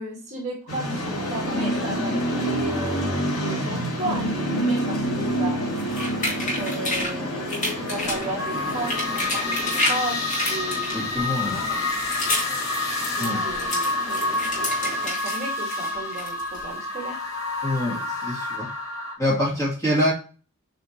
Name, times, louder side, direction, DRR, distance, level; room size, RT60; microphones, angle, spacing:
voice 1, 0.0-5.6 6.6-10.2 10.5-12.0 13.2-17.2, right 2 dB, 30° right, -2 dB, 2.0 m, -34 dB
sound 1, 0.7-15.1, equal, 80° left, 2.4 m, -29 dB
sound 2, 5.8-7.1 7.5-8.3 8.7-10.0 10.3-11.2 11.7-12.5 12.8-15.4 15.7-16.6, left 1 dB, 35° left, 2.3 m, -29 dB
sound 3, 8.4-19.1, left 2 dB, 60° left, 2.1 m, -28 dB
voice 2, 10.9-11.6 13.1-13.4 17.6-18.7 19.2-20.1, left 1 dB, 15° left, -5 dB, 2.5 m, -25 dB
7.6 x 4.2 x 3.0 m, 0.36 s
head